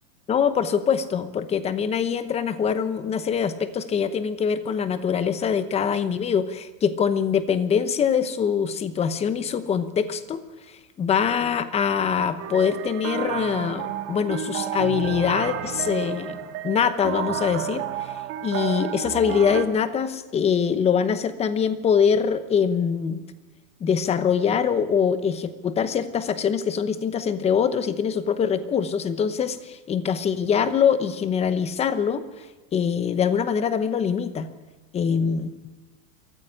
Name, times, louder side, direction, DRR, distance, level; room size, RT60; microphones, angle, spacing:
voice 1, 0.3-10.4 11.0-18.1 18.4-23.2 23.8-32.2 32.7-34.5 34.9-35.5, left 7 dB, 15° left, 12 dB, 0.9 m, -23 dB
sound 1, 12.4-19.6, right 10 dB, 35° right, 2.2 m, -31 dB
22.5 x 14.5 x 10.0 m, 1.2 s
supercardioid pair, 155°, 43 cm